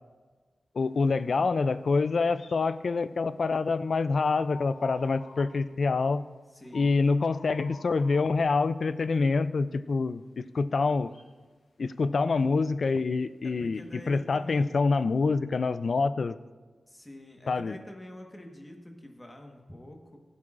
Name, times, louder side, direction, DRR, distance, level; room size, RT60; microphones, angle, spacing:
voice 1, 0.8-6.3 6.7-11.1 11.8-13.8 14.1-16.4 17.5-17.8, left 4 dB, 60° left, 14 dB, 0.3 m, -26 dB
sound 1, 2.2-2.7 4.2-5.6 6.0-6.2 6.6-8.4 10.9-11.3 13.5-14.2, left 3 dB, 90° left, 1.0 m, -51 dB
voice 2, 6.5-7.0 13.4-14.7 16.9-20.2, left 1 dB, 15° left, 2 dB, 1.3 m, -46 dB
15.5 x 8.3 x 2.5 m, 1.3 s
wide cardioid pair, 105°, 0 cm